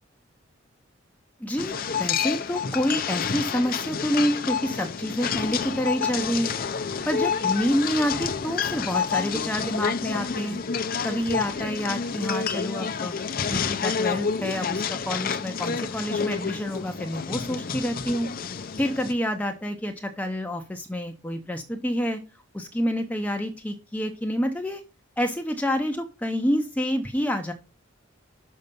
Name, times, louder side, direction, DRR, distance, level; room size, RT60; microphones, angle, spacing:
voice 1, 1.4-6.5 7.1-10.6 11.0-13.2 13.5-18.3 18.8-22.2 22.5-24.8 25.2-27.5, equal, 10° left, 4 dB, 0.7 m, -28 dB
sound 1, 1.6-19.1, left 6 dB, 45° left, 0.6 m, -29 dB
6.7 x 5.5 x 5.3 m, 0.31 s
head